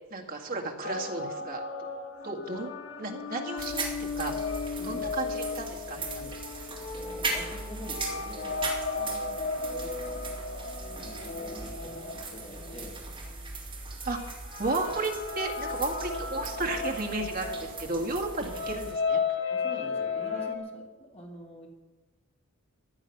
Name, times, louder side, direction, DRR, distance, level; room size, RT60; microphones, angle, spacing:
voice 1, 0.1-1.6 2.2-2.7 3.0-4.3 4.8-6.3 14.1-14.2 14.6-19.2, right 2 dB, 40° right, 1 dB, 1.9 m, -33 dB
sound 1, 0.8-13.3 14.0-20.6, left 4 dB, 65° left, 1.7 m, -35 dB
sound 2, 3.6-18.9, right 3 dB, 25° right, 2.7 m, -39 dB
voice 2, 4.8-5.1 6.8-8.6 8.9-10.3 11.0-13.0 19.5-21.7, equal, 30° left, -1 dB, 2.3 m, -46 dB
15.5 x 10.0 x 5.9 m, 1.2 s
head